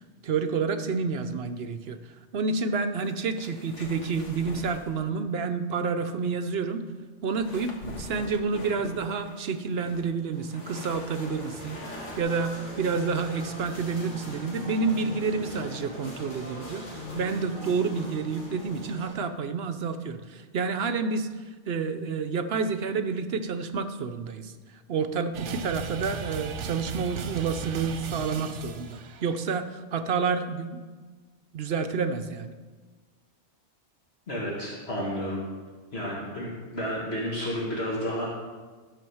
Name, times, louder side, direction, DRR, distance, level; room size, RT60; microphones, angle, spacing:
voice 1, 0.2-2.0 2.3-6.8 7.2-11.8 12.2-16.9 17.1-21.3 21.7-24.5 24.9-30.8 31.5-32.5, right 5 dB, 60° right, 8 dB, 0.9 m, -29 dB
sound 1, 3.0-5.1 7.3-12.2, left 1 dB, 85° left, 1.8 m, -44 dB
sound 2, 10.3-19.1, equal, 45° left, 2.8 m, -40 dB
sound 3, 25.3-29.5, right 6 dB, 80° right, 1.1 m, -36 dB
voice 2, 34.3-35.4 35.9-38.3, equal, 60° left, -5 dB, 2.2 m, -31 dB
12.5 x 5.9 x 7.0 m, 1.4 s
omnidirectional pair, 1.2 m